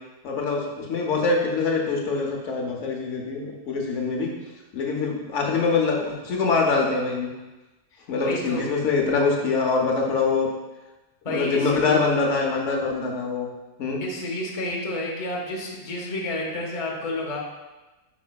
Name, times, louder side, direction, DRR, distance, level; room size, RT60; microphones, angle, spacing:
voice 1, 0.2-4.3 4.7-7.3 8.1-10.5 11.3-13.5 13.8-14.0, left 4 dB, 70° left, 0 dB, 1.0 m, -24 dB
voice 2, 8.2-8.7 11.2-12.0 14.0-17.4, left 2 dB, 35° left, -2 dB, 0.6 m, -30 dB
5.0 x 4.8 x 2.2 m, 1.1 s
omnidirectional pair, 1.3 m